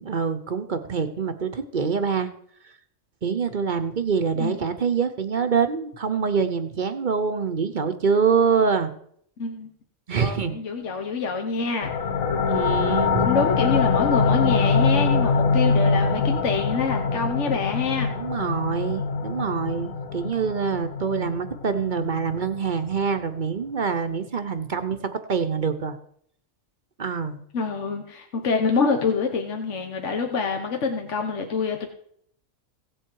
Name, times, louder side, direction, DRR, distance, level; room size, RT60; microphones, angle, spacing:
voice 1, 0.0-2.3 3.2-8.9 10.1-10.5 12.4-13.3 18.2-26.0 27.0-27.4, right 6 dB, 45° right, 8 dB, 0.8 m, -25 dB
voice 2, 10.2-11.9 13.2-18.1 27.5-31.9, left 4 dB, 65° left, 3 dB, 1.5 m, -26 dB
sound 1, 11.8-23.2, left 5 dB, 90° left, 1.4 m, -24 dB
16.5 x 7.8 x 4.7 m, 0.66 s
omnidirectional pair, 1.4 m